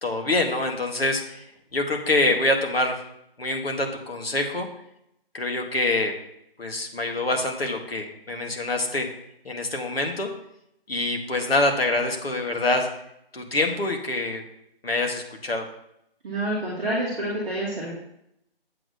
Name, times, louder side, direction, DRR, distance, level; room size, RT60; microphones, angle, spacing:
voice 1, 0.0-1.4 1.7-3.0 3.4-4.7 5.3-6.1 6.6-9.1 9.5-10.3 10.9-12.9 13.3-14.4 14.8-15.7, left 2 dB, 75° left, 3 dB, 1.7 m, -25 dB
voice 2, 16.2-17.9, right 1 dB, 5° right, -11 dB, 0.8 m, -28 dB
7.6 x 4.1 x 6.3 m, 0.78 s
figure-of-eight pair, 160°, 30 cm